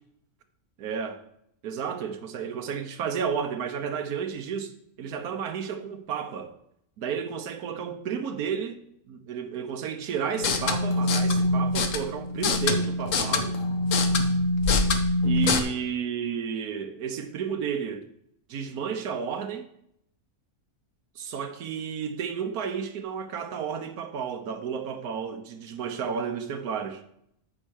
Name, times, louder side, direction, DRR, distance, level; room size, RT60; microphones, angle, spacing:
voice 1, 0.8-1.2 1.6-4.7 5.0-6.5 7.0-8.8 9.1-13.6 15.2-18.1 18.5-19.7 21.2-27.0, right 7 dB, 80° right, 1.4 m, -32 dB
sound 1, 10.3-15.6, left 2 dB, 65° left, 1.2 m, -24 dB
8.7 x 4.9 x 6.3 m
omnidirectional pair, 1.6 m